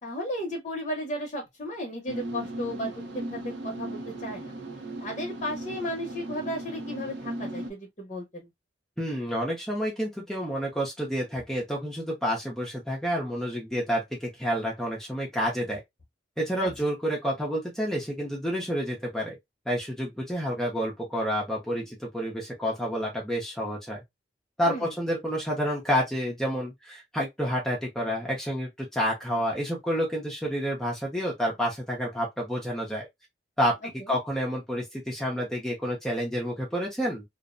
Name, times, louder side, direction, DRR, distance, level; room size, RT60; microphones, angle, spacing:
voice 1, 0.0-4.5 5.0-8.5 16.6-16.7 24.6-24.9 34.0-34.1, equal, 40° left, 0.7 m, -34 dB
sound 1, 2.1-7.7, right 1 dB, 75° right, 0.6 m, -37 dB
voice 2, 9.0-15.8 16.4-19.4 19.7-24.0 24.6-33.1 33.6-33.8 34.1-37.2, equal, 5° left, 0.6 m, -29 dB
2.5 x 2.1 x 2.4 m
head